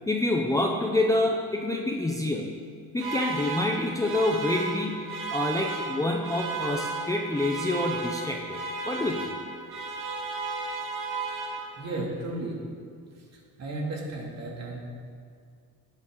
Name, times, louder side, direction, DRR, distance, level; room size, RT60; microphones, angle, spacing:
voice 1, 0.1-2.5 2.9-5.0 5.3-8.6 8.9-9.3, left 2 dB, 10° left, 0 dB, 0.6 m, -27 dB
sound 1, 3.0-12.0, right 3 dB, 70° right, 2.3 m, -34 dB
voice 2, 11.8-12.6 13.1-14.8, right 2 dB, 45° right, -2 dB, 2.6 m, -34 dB
17.0 x 7.4 x 3.8 m, 2.3 s
cardioid pair, 135°, 37 cm